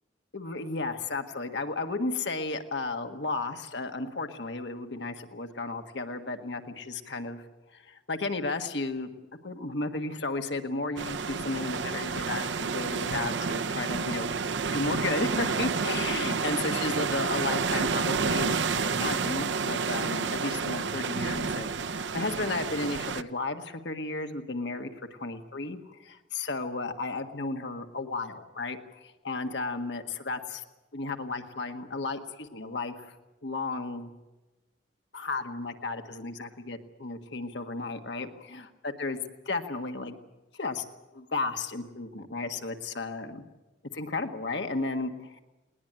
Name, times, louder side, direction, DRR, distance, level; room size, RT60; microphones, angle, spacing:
voice 1, 0.3-7.4 7.7-9.1 9.4-14.3 14.7-30.6 30.9-33.1 33.4-34.1 35.1-39.2 39.4-40.2 40.5-40.8 41.1-43.4 43.9-45.4, left 3 dB, 65° left, 6 dB, 1.6 m, -34 dB
sound 1, 11.0-23.2, right 5 dB, 75° right, 0.7 m, -30 dB
20.5 x 19.5 x 8.9 m, 1.1 s
head